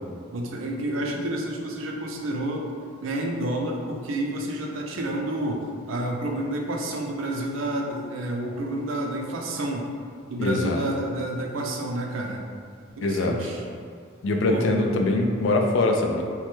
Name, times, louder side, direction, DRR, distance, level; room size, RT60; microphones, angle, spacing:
voice 1, 0.3-2.7 3.0-9.9 10.3-12.5 13.0-13.6 14.5-14.7, right 1 dB, 85° right, 1 dB, 0.4 m, -29 dB
voice 2, 10.4-10.8 13.0-13.5 14.2-16.2, left 2 dB, 70° left, 3 dB, 0.3 m, -23 dB
3.0 x 2.2 x 3.0 m, 2.1 s
head